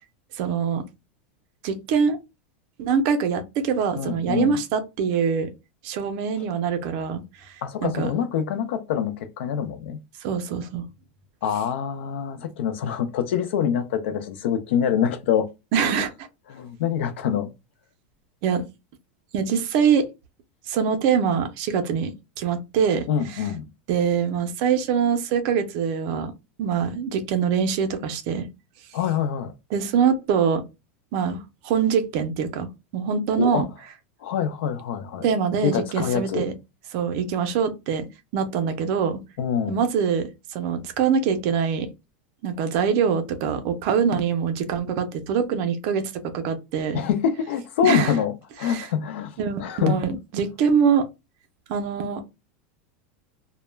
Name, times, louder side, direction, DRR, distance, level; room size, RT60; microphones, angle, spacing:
voice 1, 0.3-0.8 1.6-2.2 2.8-5.5 5.8-7.5 7.8-8.1 10.2-10.9 15.7-16.1 18.4-18.6 19.3-20.1 20.7-23.5 23.9-26.3 26.6-28.5 29.7-30.6 31.1-33.6 35.2-36.5 36.9-38.1 38.3-39.2 39.7-41.9 42.4-47.0 47.8-48.1 48.6-48.9 49.4-51.1 51.7-52.2, right 6 dB, 40° right, 0.5 m, -24 dB
voice 2, 4.0-4.6 7.6-10.0 11.4-15.5 16.5-17.5 23.1-23.7 28.9-29.5 33.4-33.6 34.2-35.3 35.6-36.5 39.4-39.8 46.9-50.0, left 8 dB, 70° left, 0.5 m, -25 dB
2.2 x 2.0 x 3.2 m
supercardioid pair, 165°, 6 cm